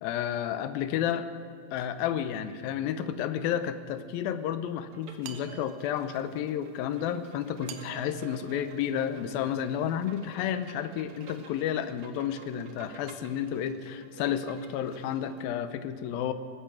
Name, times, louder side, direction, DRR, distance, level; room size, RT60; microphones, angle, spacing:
voice 1, 0.0-1.3 1.7-16.3, left 9 dB, 85° left, 11 dB, 2.5 m, -31 dB
Bowed string instrument, 4.9-15.4, right 5 dB, 55° right, 1.7 m, -52 dB
sound 1, 5.2-6.3 7.7-9.5, right 9 dB, 70° right, 2.3 m, -47 dB
18.5 x 10.5 x 7.6 m, 2.3 s
omnidirectional pair, 4.2 m